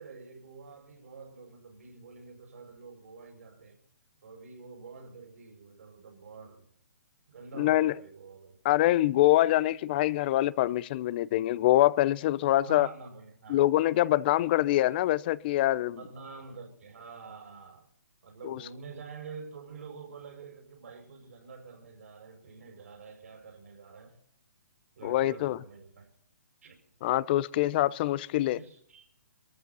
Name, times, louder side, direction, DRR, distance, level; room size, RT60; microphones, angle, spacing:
voice 1, 0.0-3.8 4.2-6.7 7.3-8.6 12.6-13.6 16.0-17.9 18.2-24.2 25.0-26.1 26.6-26.8 28.5-29.1, right 4 dB, 65° right, 6.3 m, -47 dB
voice 2, 7.6-7.9 8.6-12.9 13.5-16.0 18.4-18.6 25.0-25.6 27.0-28.6, left 15 dB, 35° left, 0.7 m, -25 dB
23.5 x 14.5 x 4.1 m
hypercardioid pair, 140°, 8 cm